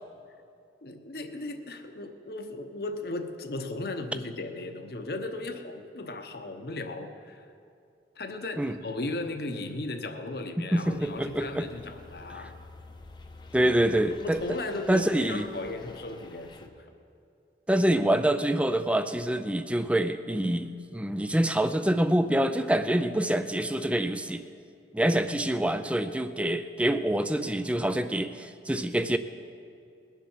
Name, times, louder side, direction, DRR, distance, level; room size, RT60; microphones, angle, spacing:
voice 1, 0.8-7.4 8.2-12.5 13.6-13.7 14.1-16.8, left 2 dB, 60° left, 6 dB, 0.9 m, -36 dB
voice 2, 10.6-11.7 13.5-14.4 14.9-15.5 17.7-24.4 24.9-29.2, right 1 dB, 5° right, 10 dB, 0.4 m, -26 dB
sound 1, 10.8-16.7, left 2 dB, 25° left, 0.7 m, -49 dB
21.0 x 7.4 x 5.6 m, 2.5 s
head